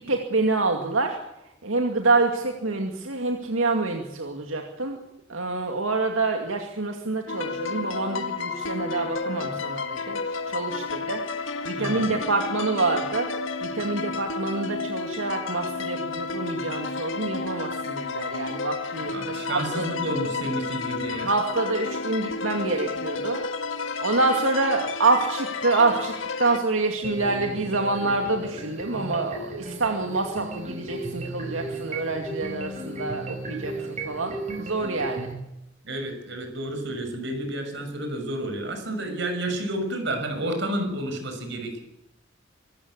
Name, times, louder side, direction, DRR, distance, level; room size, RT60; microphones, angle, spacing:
voice 1, 0.1-1.2 1.6-5.0 5.3-10.2 10.5-13.3 13.6-19.9 21.2-23.4 23.8-26.1 26.4-35.3, right 3 dB, 90° right, 3 dB, 2.4 m, -27 dB
sound 1, 7.3-26.6, left 4 dB, 75° left, 1.8 m, -31 dB
voice 2, 11.8-12.1 19.0-21.3 35.8-41.8, right 1 dB, 60° right, 5 dB, 6.3 m, -30 dB
sound 2, 27.0-35.3, right 2 dB, 35° right, 4.9 m, -35 dB
25.0 x 14.5 x 8.3 m, 0.87 s
head